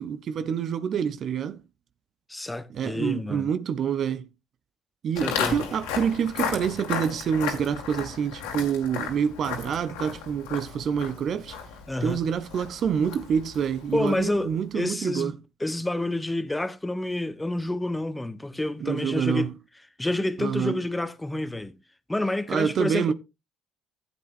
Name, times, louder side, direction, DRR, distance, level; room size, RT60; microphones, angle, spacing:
voice 1, 0.0-1.6 2.7-4.3 5.0-11.6 12.0-15.3 18.8-19.5 20.4-20.8 22.5-23.1, right 7 dB, 55° right, 0.7 m, -27 dB
voice 2, 2.3-3.5 5.2-5.6 11.9-12.2 13.9-19.5 20.0-21.7 22.1-23.1, left 1 dB, 10° left, 1.1 m, -29 dB
Walk footsteps, 5.1-14.4, left 7 dB, 80° left, 2.3 m, -34 dB
15.5 x 8.1 x 2.6 m
hypercardioid pair, 55°, 0 cm